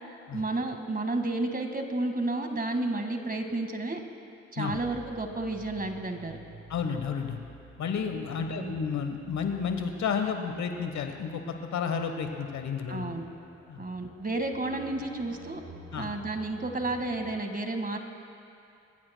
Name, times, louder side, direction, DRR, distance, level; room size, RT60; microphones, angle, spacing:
voice 1, 0.3-4.0 4.5-6.4 8.5-8.8 12.9-13.3 13.8-15.6 16.0-18.0, right 2 dB, 30° right, 5 dB, 1.7 m, -31 dB
sound 1, 4.7-17.3, right 2 dB, 55° right, 3.8 m, -51 dB
voice 2, 6.7-7.4 7.8-13.1 13.7-13.8 15.9-16.1, left 6 dB, 70° left, 6 dB, 1.2 m, -31 dB
25.5 x 15.0 x 2.2 m, 2.6 s
hypercardioid pair, 40°, 30 cm